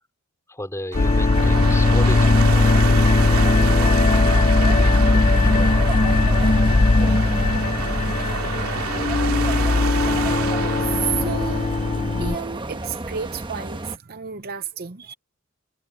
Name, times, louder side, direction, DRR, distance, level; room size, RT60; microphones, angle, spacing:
voice 1, 0.5-2.5 5.4-5.5, left 1 dB, 15° left, 4.8 m, -33 dB
sound 1, 0.9-12.4, left 3 dB, 30° left, 0.5 m, -18 dB
sound 2, 0.9-12.1, right 6 dB, 80° right, 2.5 m, -30 dB
sound 3, 1.3-14.0, right 2 dB, 20° right, 1.1 m, -31 dB
voice 2, 10.8-11.7 12.2-15.1, right 7 dB, 45° right, 0.7 m, -31 dB
head